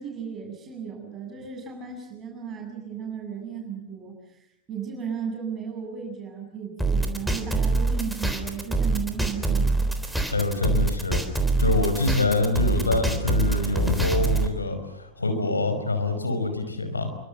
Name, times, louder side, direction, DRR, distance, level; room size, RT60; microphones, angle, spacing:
voice 1, 0.0-9.9, right 7 dB, 25° right, 1 dB, 7.5 m, -35 dB
sound 1, 6.8-14.5, right 3 dB, ahead, 3.7 m, -24 dB
voice 2, 10.3-11.2 11.6-17.1, left 2 dB, 80° left, 7 dB, 5.3 m, -25 dB
28.0 x 25.0 x 7.1 m, 0.82 s
figure-of-eight pair, 90°, 0 cm